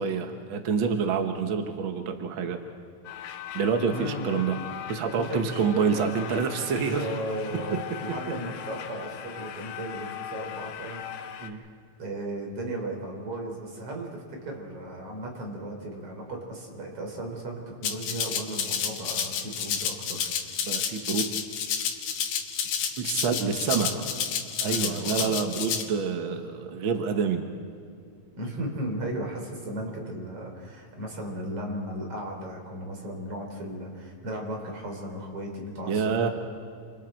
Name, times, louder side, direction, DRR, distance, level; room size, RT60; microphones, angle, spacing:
voice 1, 0.0-2.6 3.5-4.6 4.9-7.0 11.4-11.6 20.6-21.3 23.0-23.9 24.6-27.4 35.9-36.3, right 6 dB, 65° right, 5 dB, 1.2 m, -27 dB
sound 1, 3.0-11.5, left 10 dB, 85° left, 2.7 m, -40 dB
voice 2, 3.9-4.3 5.1-11.7 12.0-20.7 23.4-24.1 24.6-25.3 28.4-36.3, right 1 dB, 45° right, 1 dB, 4.3 m, -36 dB
Rattle (instrument), 17.8-25.8, left 7 dB, 70° left, 2.8 m, -30 dB
28.0 x 27.0 x 4.5 m, 2.4 s
omnidirectional pair, 3.8 m